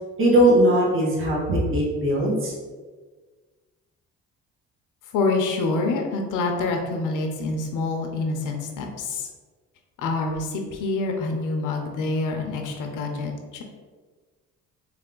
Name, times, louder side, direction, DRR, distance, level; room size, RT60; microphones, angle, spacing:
voice 1, 0.2-2.5, right 1 dB, 45° right, -4 dB, 1.4 m, -19 dB
voice 2, 5.1-9.3 10.0-13.6, left 3 dB, 85° left, 3 dB, 0.7 m, -26 dB
3.4 x 3.4 x 3.8 m, 1.4 s
cardioid pair, 90°, 30 cm